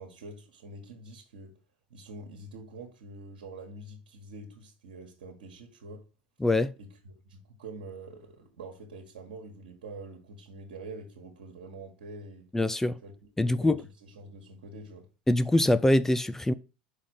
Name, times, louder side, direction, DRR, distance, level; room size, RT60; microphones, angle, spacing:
voice 1, 0.0-1.6 1.9-6.0 6.8-12.5 13.0-15.1, right 2 dB, 75° right, 1.5 m, -46 dB
voice 2, 6.4-6.7 12.5-13.0 13.4-13.8 15.3-16.5, left 1 dB, 10° left, 0.4 m, -24 dB
5.5 x 4.9 x 6.3 m
hypercardioid pair, 80°, 5 cm